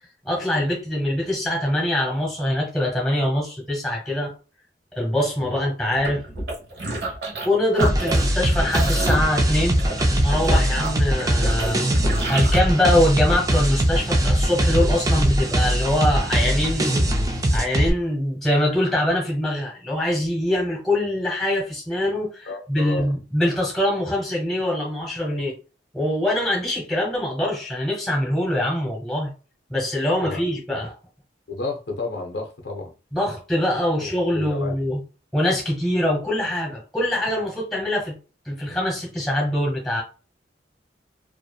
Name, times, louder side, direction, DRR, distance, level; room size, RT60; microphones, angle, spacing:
voice 1, 0.2-4.3 4.9-6.2 7.4-9.8 10.2-11.9 12.3-17.0 17.3-25.5 25.9-29.3 29.7-30.9 33.1-35.0 35.3-38.2 38.4-40.0, left 1 dB, ahead, 1.1 m, -23 dB
sound 1, 5.9-7.5 7.7-12.6, right 1 dB, 60° right, 1.0 m, -28 dB
sound 2, 7.8-17.9, right 1 dB, 20° right, 0.3 m, -21 dB
voice 2, 22.5-23.1 30.2-30.4 31.5-32.9 34.0-34.7, left 3 dB, 65° left, 0.6 m, -32 dB
2.7 x 2.5 x 2.2 m
head